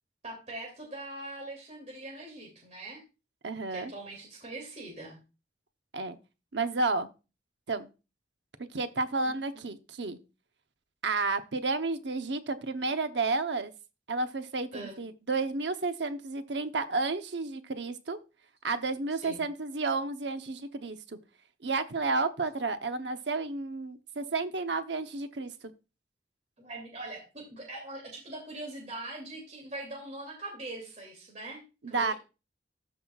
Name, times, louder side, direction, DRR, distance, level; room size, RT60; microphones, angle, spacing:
voice 1, 0.2-3.0 3.7-5.2 9.2-9.7 14.7-14.9 19.1-19.4 26.6-31.6 31.9-32.1, right 2 dB, 40° right, -1 dB, 2.6 m, -42 dB
voice 2, 3.4-3.9 5.9-6.2 6.5-7.1 7.7-7.9 8.7-10.2 11.0-13.7 14.1-18.2 18.6-21.2 21.6-25.5 31.8-32.1, right 3 dB, 80° right, 9 dB, 0.9 m, -31 dB
13.0 x 5.7 x 2.4 m, 0.30 s
head